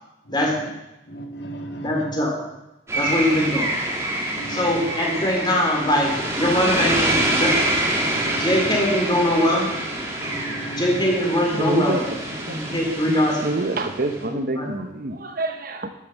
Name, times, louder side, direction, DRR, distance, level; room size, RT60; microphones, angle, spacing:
voice 1, 0.3-0.7 1.1-2.2 3.0-3.2 4.3-4.8 8.1-8.7 10.2-11.1, right 2 dB, 60° left, 4 dB, 2.1 m, -35 dB
voice 2, 1.8-2.3 3.0-3.7 4.5-7.6 8.3-9.7 10.7-12.1 12.5-13.9 14.2-14.7, left 1 dB, 25° left, -1 dB, 3.5 m, -22 dB
sound 1, 2.9-14.2, right 1 dB, 15° right, 2.4 m, -26 dB
voice 3, 11.6-12.0 12.4-12.6 13.4-15.9, right 2 dB, 50° right, 7 dB, 0.9 m, -26 dB
10.5 x 9.7 x 7.1 m, 0.94 s
head